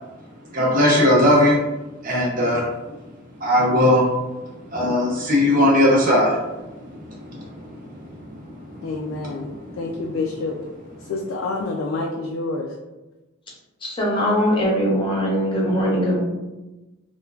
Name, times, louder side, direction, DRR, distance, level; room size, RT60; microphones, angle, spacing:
voice 1, 0.5-1.5 2.0-2.7 3.4-4.0 4.7-6.4 7.3-7.9 9.1-9.6, left 1 dB, 45° right, -4 dB, 0.8 m, -18 dB
voice 2, 8.8-10.6 11.1-12.7, left 3 dB, 85° left, 0 dB, 0.3 m, -28 dB
voice 3, 13.8-16.2, equal, 25° left, -4 dB, 0.7 m, -21 dB
3.1 x 2.2 x 2.3 m, 1.1 s
head